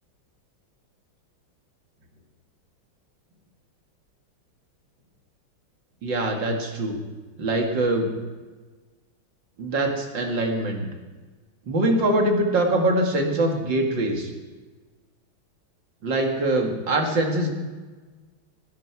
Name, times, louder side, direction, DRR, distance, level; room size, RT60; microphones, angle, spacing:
voice 1, 6.0-7.0 7.4-8.1 9.6-10.9 11.7-14.3 16.0-17.5, right 1 dB, 60° right, 2 dB, 2.7 m, -23 dB
20.0 x 11.5 x 4.8 m, 1.3 s
omnidirectional pair, 2.3 m